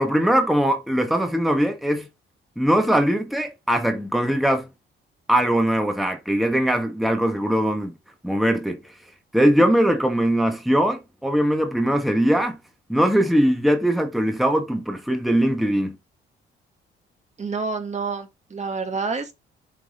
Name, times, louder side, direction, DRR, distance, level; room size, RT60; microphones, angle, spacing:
voice 1, 0.0-2.1 2.6-4.7 5.3-7.9 8.2-8.8 9.3-12.6 12.9-16.0, equal, ahead, 1.5 m, -21 dB
voice 2, 17.4-19.3, right 4 dB, 35° right, 2.0 m, -28 dB
7.7 x 4.8 x 3.7 m
cardioid pair, 90°, 20 cm